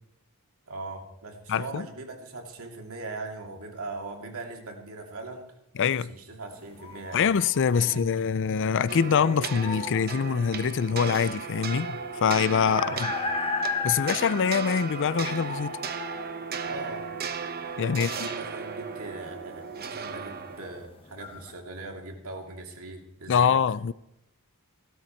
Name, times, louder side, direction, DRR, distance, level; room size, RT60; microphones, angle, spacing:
voice 1, 0.7-5.5 6.1-7.3 7.7-8.1 12.6-13.2 16.6-17.1 17.8-23.5, right 2 dB, 70° right, 2.6 m, -39 dB
voice 2, 1.5-1.9 5.8-6.1 7.1-12.8 13.8-15.8 17.8-18.3 23.3-23.9, left 6 dB, 55° left, 0.5 m, -24 dB
sound 1, 6.5-21.5, left 4 dB, 25° left, 1.2 m, -37 dB
sound 2, 8.9-20.9, right 6 dB, 45° right, 1.0 m, -36 dB
16.0 x 12.5 x 4.5 m
head